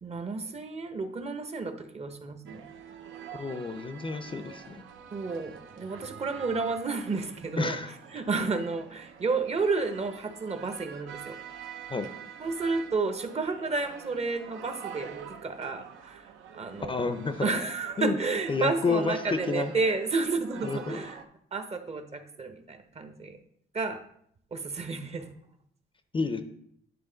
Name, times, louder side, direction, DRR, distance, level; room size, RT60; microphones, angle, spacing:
voice 1, 0.0-2.6 5.1-7.8 8.1-11.4 12.4-17.1 17.4-21.2 21.5-23.4 23.7-24.0 24.5-25.3, right 4 dB, 30° right, 8 dB, 0.8 m, -31 dB
sound 1, 2.5-21.2, right 8 dB, 80° right, 0.7 m, -46 dB
voice 2, 3.3-4.8 7.6-7.9 11.9-12.1 16.9-17.5 18.0-18.2 18.5-19.7 20.6-21.0 26.1-26.4, left 4 dB, 25° left, 9 dB, 0.5 m, -30 dB
9.6 x 3.7 x 3.9 m, 0.68 s
cardioid pair, 90°, 20 cm